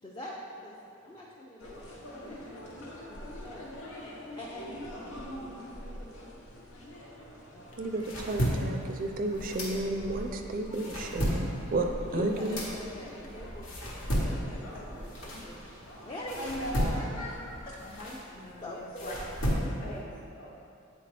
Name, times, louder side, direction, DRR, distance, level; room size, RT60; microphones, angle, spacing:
voice 1, 0.0-5.2 5.5-6.2 7.5-7.8 12.0-16.7 17.7-18.3 18.6-19.3, equal, 20° left, -4 dB, 0.5 m, -45 dB
sound 1, 1.6-17.7, equal, 90° left, 1.2 m, -45 dB
sound 2, 7.7-10.2 10.6-15.9 16.3-20.0, equal, 65° left, 1.1 m, -33 dB
voice 2, 7.8-12.6, right 2 dB, 40° right, 4 dB, 0.4 m, -32 dB
voice 3, 13.1-13.4 14.7-14.8 17.8-19.1 19.8-20.6, left 1 dB, 40° left, -3 dB, 1.0 m, -45 dB
8.3 x 4.3 x 3.3 m, 2.7 s
head